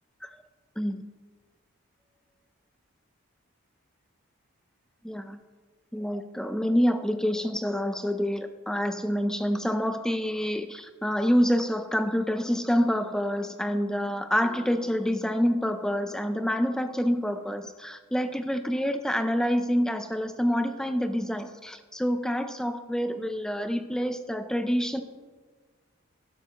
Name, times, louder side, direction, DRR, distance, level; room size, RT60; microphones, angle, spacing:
voice 1, 5.0-5.4 5.9-25.0, equal, 5° left, 9 dB, 0.4 m, -27 dB
12.5 x 11.5 x 3.0 m, 1.4 s
head